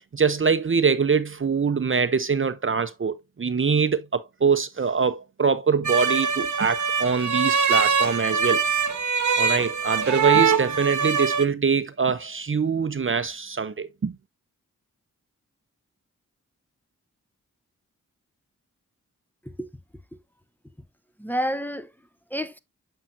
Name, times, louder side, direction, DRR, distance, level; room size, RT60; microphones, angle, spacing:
voice 1, 0.0-8.6 9.4-14.1, right 5 dB, 40° right, 0.7 m, -24 dB
sound 1, 5.8-11.4, right 6 dB, 65° right, 1.0 m, -23 dB
voice 2, 21.2-22.6, equal, 5° left, 0.8 m, -30 dB
7.3 x 5.5 x 2.6 m
cardioid pair, 40°, 32 cm